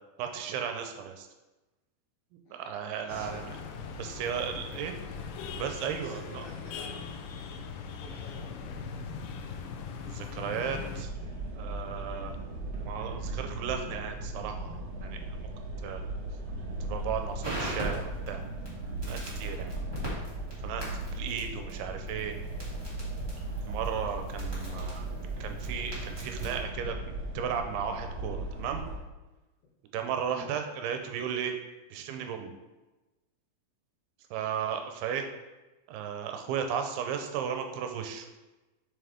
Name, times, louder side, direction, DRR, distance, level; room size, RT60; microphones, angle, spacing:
voice 1, 0.2-1.3 2.6-3.5 4.0-4.9 5.6-6.4 10.1-11.1 11.6-12.3 12.8-15.5 15.8-16.0 16.8-18.4 19.0-19.7 20.6-20.8 21.1-22.4 23.7-25.1 25.4-27.0 27.3-28.8 29.9-31.6 31.9-32.5 34.3-35.3 35.9-38.3, right 8 dB, 80° right, 5 dB, 2.7 m, -35 dB
voice 2, 3.0-3.5 5.9-7.2 7.8-9.0 19.4-19.7 24.6-24.9 30.2-30.5 34.3-34.6, left 2 dB, 65° left, -6 dB, 2.4 m, -51 dB
sound 1, 3.1-11.0, left 5 dB, 90° left, 1.9 m, -40 dB
sound 2, 11.0-29.0, right 2 dB, 60° right, 1.7 m, -37 dB
Crackle, 16.8-26.6, equal, 10° right, 1.1 m, -41 dB
7.3 x 6.5 x 3.5 m, 1.1 s
omnidirectional pair, 4.6 m